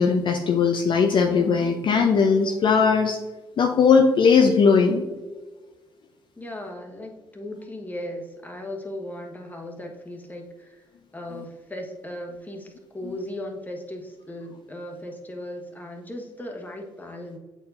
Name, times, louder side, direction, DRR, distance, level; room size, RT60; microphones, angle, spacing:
voice 1, 0.0-3.2 3.6-5.0, left 5 dB, 50° left, 3 dB, 0.6 m, -19 dB
voice 2, 6.4-10.8 11.1-17.4, left 1 dB, 15° left, 2 dB, 1.4 m, -37 dB
8.2 x 4.5 x 2.6 m, 1.3 s
hypercardioid pair, 45°, 11 cm